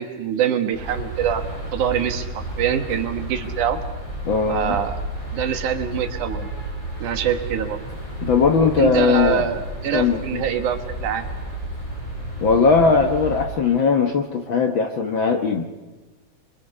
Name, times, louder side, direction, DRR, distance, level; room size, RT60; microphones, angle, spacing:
voice 1, 0.0-1.4 1.7-3.8 4.5-5.0 5.3-6.5 7.0-7.8 8.8-11.3, right 9 dB, 90° right, 7 dB, 2.9 m, -24 dB
sound 1, 0.7-13.4, right 1 dB, 20° left, 7.5 m, -32 dB
voice 2, 4.2-4.8 8.2-9.5 9.9-10.4 12.4-15.7, left 5 dB, 60° left, 4 dB, 1.3 m, -19 dB
26.5 x 23.5 x 5.4 m, 1.2 s
omnidirectional pair, 3.4 m